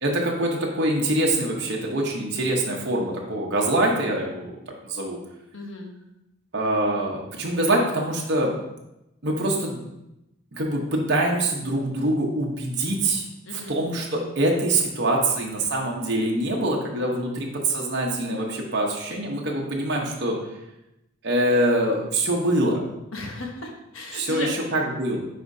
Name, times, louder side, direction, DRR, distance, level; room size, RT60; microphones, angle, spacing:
voice 1, 0.0-4.6 4.8-5.2 6.5-8.5 9.2-9.8 10.5-13.3 13.7-20.4 21.2-22.8 24.1-25.2, right 1 dB, 55° right, -1 dB, 1.0 m, -24 dB
voice 2, 5.5-5.9 13.4-13.8 23.1-24.5, left 2 dB, 70° left, 2 dB, 1.1 m, -35 dB
10.0 x 4.3 x 2.7 m, 0.90 s
head